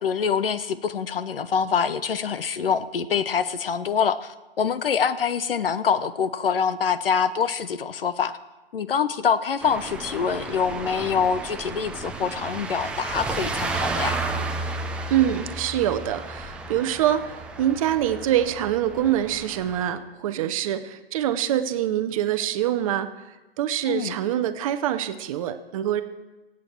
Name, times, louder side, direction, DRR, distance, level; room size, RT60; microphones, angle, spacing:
voice 1, 0.0-8.4 8.7-14.2 23.9-24.2, left 7 dB, 65° left, 14 dB, 0.9 m, -25 dB
sound 1, 9.6-19.9, right 3 dB, 5° right, 0.5 m, -32 dB
voice 2, 15.1-23.1 23.6-26.0, right 11 dB, 35° right, 10 dB, 0.8 m, -25 dB
25.5 x 8.5 x 4.6 m, 1.1 s
figure-of-eight pair, 125°, 30 cm